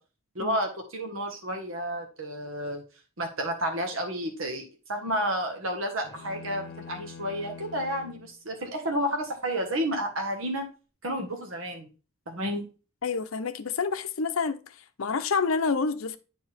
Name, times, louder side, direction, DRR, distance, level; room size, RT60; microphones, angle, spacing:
voice 1, 0.3-2.8 3.2-4.6 4.9-10.7 11.0-11.9 12.3-12.6, equal, 80° right, 1.5 m, -31 dB
sound 1, 6.0-8.3, left 6 dB, 55° left, 1.3 m, -44 dB
voice 2, 13.0-14.6 15.0-16.2, left 5 dB, 85° left, 0.7 m, -28 dB
9.1 x 4.6 x 3.4 m
head